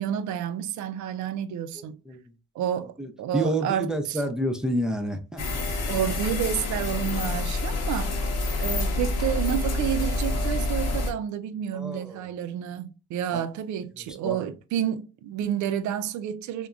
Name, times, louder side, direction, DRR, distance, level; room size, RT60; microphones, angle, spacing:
voice 1, 0.0-2.0 2.6-2.9 3.2-4.2 5.9-8.1 8.6-16.7, right 10 dB, 75° right, 0.4 m, -30 dB
voice 2, 3.0-5.6 11.7-12.3 13.3-13.5 14.2-14.5, right 1 dB, ahead, 0.5 m, -29 dB
sound 1, 5.4-11.1, left 2 dB, 60° left, 0.8 m, -27 dB
3.4 x 2.1 x 2.4 m
cardioid pair, 90°, 30 cm